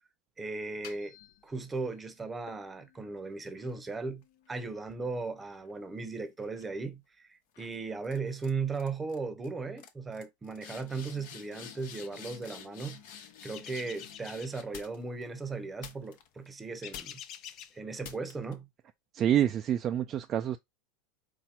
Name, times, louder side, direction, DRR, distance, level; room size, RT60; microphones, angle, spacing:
voice 1, 0.4-1.2 1.4-4.2 4.5-7.0 7.3-13.0 13.4-17.2 17.7-18.7, right 4 dB, 15° right, 0.8 m, -37 dB
sound 1, 0.6-1.9 2.5-6.0 6.4-6.8 7.5-7.8 8.0-8.5 8.7-9.2 9.4-9.5 9.8-15.2 15.8-16.5 16.9-17.4 18.0-18.5, left 8 dB, 65° left, 0.9 m, -50 dB
sound 2, 13.5-14.6 16.8-17.8, left 10 dB, 45° left, 0.6 m, -46 dB
voice 2, 19.1-20.6, right 10 dB, 35° right, 0.4 m, -27 dB
4.2 x 2.2 x 4.3 m
hypercardioid pair, 110°, 0 cm